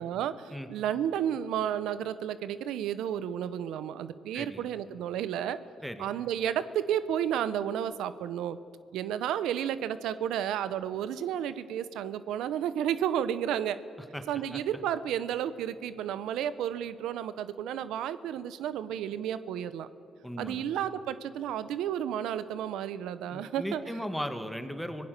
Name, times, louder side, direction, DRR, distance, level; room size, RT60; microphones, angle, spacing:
voice 1, 0.0-5.6 6.0-8.6 8.9-13.8 14.3-19.9 20.4-23.8, right 10 dB, 85° right, 14 dB, 0.8 m, -32 dB
voice 2, 4.3-4.7 5.8-6.1 14.1-14.2 14.5-14.6 20.2-20.6 23.3-25.1, equal, ahead, 8 dB, 1.8 m, -37 dB
25.0 x 17.0 x 6.8 m, 2.7 s
cardioid pair, 90°, 0 cm